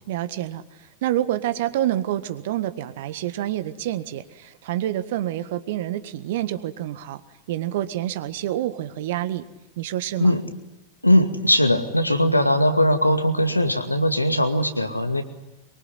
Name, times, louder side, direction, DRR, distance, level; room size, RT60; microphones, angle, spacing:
voice 1, 0.1-7.2 7.5-9.4 9.8-10.4, right 13 dB, 55° right, 13 dB, 1.6 m, -27 dB
voice 2, 11.0-15.2, left 1 dB, 85° left, 7 dB, 2.2 m, -20 dB
23.5 x 23.5 x 10.0 m, 0.98 s
figure-of-eight pair, 90°, 0 cm